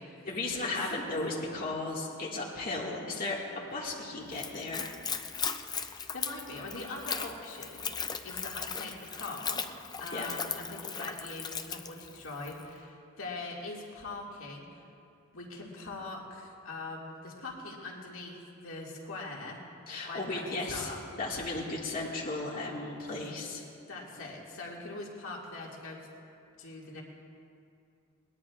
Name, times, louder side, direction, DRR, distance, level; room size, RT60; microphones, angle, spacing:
voice 1, 0.3-5.0 10.1-10.3 19.9-20.9 21.2-23.6, left 2 dB, 40° left, -5 dB, 1.9 m, -35 dB
Splash splatter / Trickle dribble, 4.3-12.6, left 6 dB, 20° left, 0.4 m, -38 dB
voice 2, 5.7-7.9 8.2-9.7 10.0-14.8 15.3-19.6 20.1-21.0 23.9-26.1 26.6-27.0, left 2 dB, 65° left, -3 dB, 2.1 m, -42 dB
21.5 x 19.5 x 2.4 m, 2.5 s
head